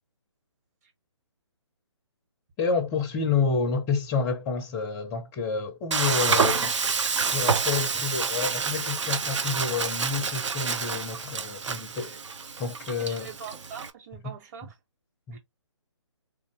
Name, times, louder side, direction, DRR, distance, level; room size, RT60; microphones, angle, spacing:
voice 1, 2.6-6.8 7.3-12.2 12.6-13.3 14.2-14.3 15.3-15.4, left 5 dB, 15° left, 0.5 m, -29 dB
Frying (food), 5.9-13.9, right 5 dB, 70° right, 0.7 m, -28 dB
voice 2, 13.0-14.7 15.3-15.4, right 7 dB, 35° right, 1.4 m, -43 dB
3.6 x 2.6 x 2.9 m
figure-of-eight pair, 145°, 16 cm